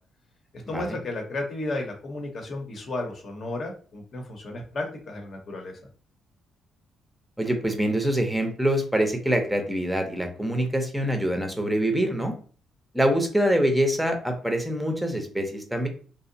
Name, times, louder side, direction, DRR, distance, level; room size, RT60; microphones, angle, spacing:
voice 1, 0.7-5.8, left 2 dB, 50° left, 2 dB, 0.8 m, -33 dB
voice 2, 7.4-12.3 12.9-15.9, right 1 dB, ahead, 4 dB, 0.6 m, -25 dB
2.7 x 2.0 x 2.6 m, 0.42 s
cardioid pair, 90°, 0 cm